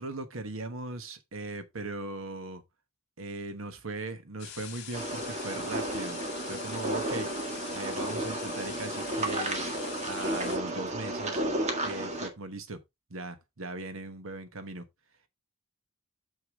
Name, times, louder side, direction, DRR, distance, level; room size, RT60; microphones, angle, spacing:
voice 1, 0.0-2.6 3.2-6.2 6.5-7.3 7.7-9.6 10.0-11.4 11.8-12.8 13.1-14.8, right 2 dB, 75° right, 1.3 m, -39 dB
sound 1, 4.4-10.6, left 9 dB, 55° left, 2.5 m, -44 dB
sound 2, 4.9-12.3, right 1 dB, 35° right, 1.8 m, -33 dB
7.1 x 6.4 x 3.6 m
head